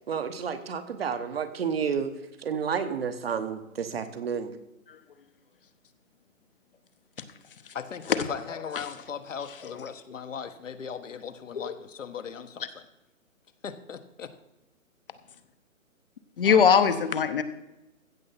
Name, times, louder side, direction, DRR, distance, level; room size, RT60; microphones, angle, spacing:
voice 1, 0.1-4.5, right 6 dB, 45° right, 9 dB, 1.2 m, -31 dB
voice 2, 7.7-12.7 13.6-14.3, left 7 dB, 65° left, 9 dB, 1.3 m, -38 dB
voice 3, 16.4-17.4, left 7 dB, 40° left, 10 dB, 1.0 m, -22 dB
15.0 x 7.2 x 5.7 m, 0.95 s
hypercardioid pair, 160°, 41 cm